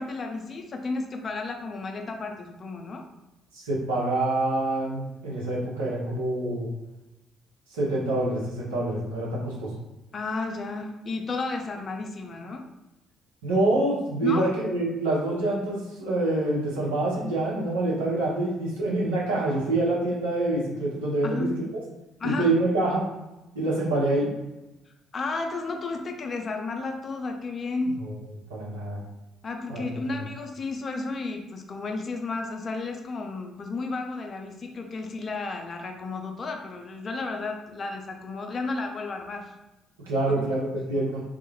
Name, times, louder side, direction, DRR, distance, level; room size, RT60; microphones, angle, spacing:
voice 1, 0.0-3.0 10.1-12.7 14.2-14.5 21.2-21.6 22.2-22.5 25.1-28.0 29.4-39.5 40.3-40.4, left 3 dB, 40° left, 3 dB, 0.4 m, -32 dB
voice 2, 3.5-6.7 7.7-9.7 13.4-21.7 22.2-23.0 23.5-24.3 28.1-28.2 28.5-29.0 29.7-29.8 40.0-41.2, right 2 dB, 80° right, -6 dB, 0.7 m, -26 dB
2.3 x 2.0 x 3.0 m, 1.0 s
figure-of-eight pair, 45°, 0 cm